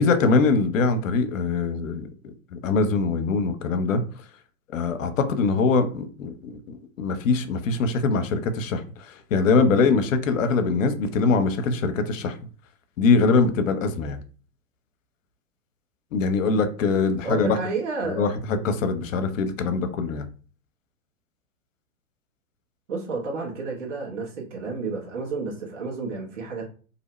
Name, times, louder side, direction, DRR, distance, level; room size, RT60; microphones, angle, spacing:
voice 1, 0.0-2.1 2.5-4.0 4.7-12.4 13.0-14.2 16.1-17.6 18.0-20.3, left 4 dB, 65° left, 0.6 m, -23 dB
voice 2, 17.2-18.3 22.9-26.7, right 4 dB, 55° right, 1.2 m, -31 dB
2.6 x 2.1 x 3.0 m
figure-of-eight pair, 100°, 42 cm